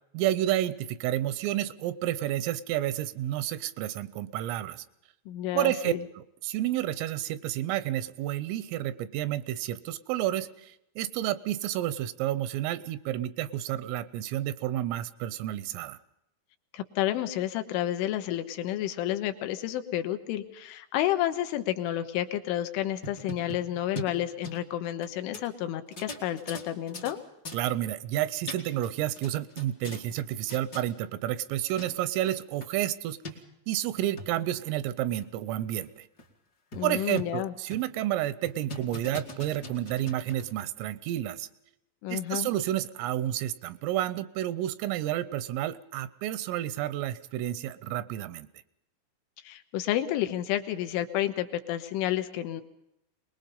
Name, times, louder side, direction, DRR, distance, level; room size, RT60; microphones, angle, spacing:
voice 1, 0.1-4.9 5.5-16.0 27.5-33.2 33.7-36.1 36.8-41.5 42.1-48.5, right 13 dB, 90° right, 16 dB, 3.5 m, -30 dB
voice 2, 5.3-6.0 16.7-27.2 36.7-37.5 42.0-42.5 49.4-52.6, left 13 dB, 75° left, 8 dB, 3.4 m, -30 dB
sound 1, 22.8-25.1 25.3-25.4 25.9-27.1 27.4-27.6 28.2-28.9 29.2-30.2 30.5-30.8 31.5-31.6 31.8-31.9 32.2-32.3 32.6-32.7 33.2-33.3 33.9-34.3 34.8-34.9 35.2-35.3 35.8-35.9 36.2-36.3 36.7-37.4 37.7-38.0 38.4-40.6, left 1 dB, 45° left, 1.2 m, -41 dB
23.5 x 20.5 x 5.5 m, 0.84 s
omnidirectional pair, 5.8 m